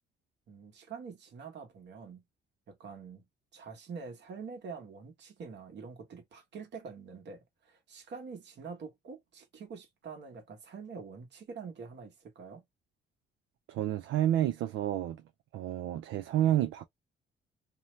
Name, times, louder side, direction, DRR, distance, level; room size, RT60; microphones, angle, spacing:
voice 1, 0.5-2.2 2.7-3.2 3.5-12.6, right 5 dB, 60° right, 1.1 m, -46 dB
voice 2, 13.7-15.2 15.5-16.8, right 12 dB, 85° right, 0.4 m, -29 dB
2.8 x 2.0 x 3.0 m
cardioid pair, 90°, 20 cm